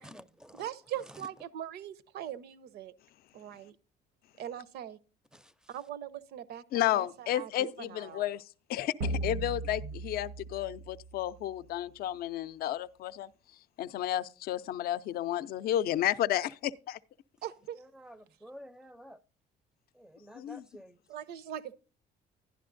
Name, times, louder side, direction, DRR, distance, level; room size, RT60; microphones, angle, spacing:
voice 1, 0.0-0.7 1.0-1.3 5.3-5.8 9.8-9.9 17.7-19.2 19.9-21.0, equal, 5° right, 0.4 m, -51 dB
voice 2, 0.5-2.9 3.3-3.7 4.4-5.0 5.7-8.2 17.4-17.8 21.1-21.7, right 11 dB, 75° right, 0.6 m, -41 dB
voice 3, 6.7-8.4 8.7-13.3 13.8-17.0 20.3-20.6, left 12 dB, 65° left, 0.4 m, -32 dB
sound 1, 9.0-11.6, right 2 dB, 90° right, 0.9 m, -37 dB
11.5 x 10.5 x 2.5 m
cardioid pair, 110°, 17 cm